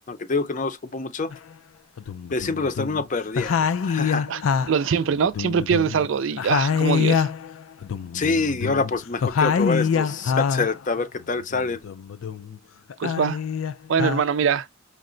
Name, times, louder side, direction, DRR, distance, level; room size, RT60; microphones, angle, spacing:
voice 1, 0.1-1.3 2.3-4.3 8.1-11.8, left 3 dB, 40° left, 0.6 m, -26 dB
sound 1, 1.3-1.4 2.0-3.1 3.4-6.1 6.4-10.8 11.2-12.6 12.9-14.2, left 6 dB, 90° left, 0.4 m, -25 dB
voice 2, 4.7-7.3 13.0-13.4 13.9-14.7, right 7 dB, 75° right, 0.4 m, -23 dB
5.7 x 2.1 x 3.8 m
head